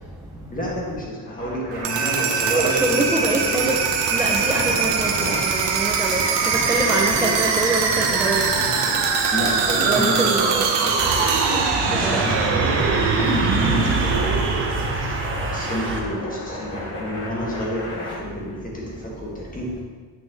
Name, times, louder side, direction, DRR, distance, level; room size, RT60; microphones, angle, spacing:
voice 1, 0.5-3.7 6.5-7.5 8.6-8.7 9.3-11.2 11.8-19.8, equal, 20° left, -4 dB, 1.8 m, -30 dB
sound 1, 1.1-18.1, left 1 dB, 40° left, 2.3 m, -35 dB
sound 2, 1.7-15.5, right 5 dB, 65° right, 1.0 m, -22 dB
voice 2, 2.5-3.8 4.1-8.4 9.8-10.5 12.0-12.2, right 2 dB, 10° right, -2 dB, 0.4 m, -24 dB
sound 3, 11.0-16.0, right 3 dB, 25° right, 0.9 m, -25 dB
8.6 x 6.0 x 3.1 m, 1.5 s
cardioid pair, 140°, 46 cm